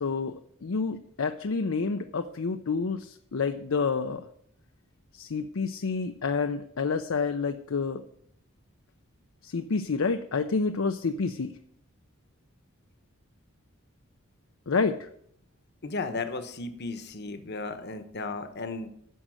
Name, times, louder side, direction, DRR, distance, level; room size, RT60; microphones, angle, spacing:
voice 1, 0.0-4.2 5.1-8.0 9.4-11.6 14.7-15.1, left 4 dB, 70° left, 8 dB, 0.6 m, -29 dB
voice 2, 15.8-18.9, left 3 dB, 50° left, 9 dB, 1.1 m, -35 dB
11.0 x 6.4 x 7.7 m, 0.70 s
head